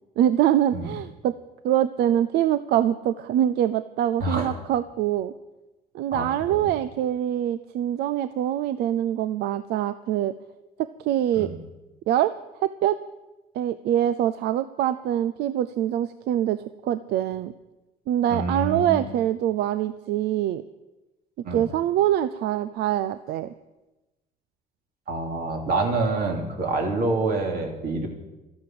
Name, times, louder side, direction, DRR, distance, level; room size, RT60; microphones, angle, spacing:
voice 1, 0.2-1.4 1.6-5.3 5.9-10.3 10.8-11.5 12.1-12.3 12.6-13.0 13.5-17.5 18.1-20.6 21.5-23.5, right 11 dB, 80° right, 14 dB, 0.6 m, -24 dB
voice 2, 4.2-4.5 6.1-6.7 11.4-11.5 18.3-19.0 21.4-21.6 25.1-28.1, right 3 dB, 60° right, 2 dB, 3.3 m, -27 dB
13.0 x 10.5 x 7.8 m, 1.0 s
cardioid pair, 110°, 17 cm